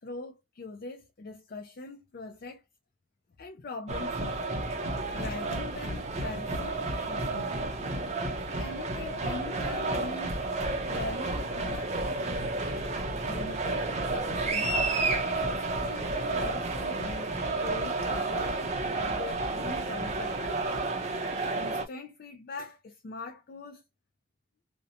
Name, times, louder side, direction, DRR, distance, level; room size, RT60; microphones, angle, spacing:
voice 1, 0.0-2.6 3.4-4.6 5.1-7.6 8.2-10.4 10.9-12.3 13.3-14.7 15.5-18.6 18.9-20.9 21.5-23.8, left 3 dB, 50° left, 0.4 m, -42 dB
sound 1, 3.9-21.8, right 2 dB, 35° right, 0.5 m, -31 dB
2.6 x 2.0 x 2.7 m
head